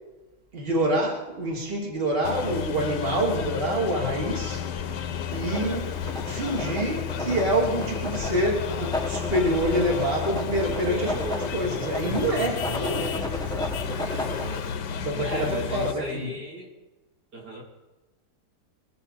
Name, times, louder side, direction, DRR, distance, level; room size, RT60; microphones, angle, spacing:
voice 1, 0.5-4.6 5.3-5.9 6.2-13.3 14.0-14.2 15.0-16.3, right 1 dB, 35° right, -2 dB, 3.2 m, -27 dB
sound 1, 2.2-15.9, left 8 dB, 85° left, 1.5 m, -32 dB
Writing, 5.3-14.7, left 1 dB, 5° left, 1.1 m, -34 dB
voice 2, 10.9-11.6 14.1-14.7 15.2-16.7 17.3-17.6, equal, 70° right, -3 dB, 3.7 m, -35 dB
22.5 x 13.0 x 4.2 m, 1.1 s
omnidirectional pair, 1.8 m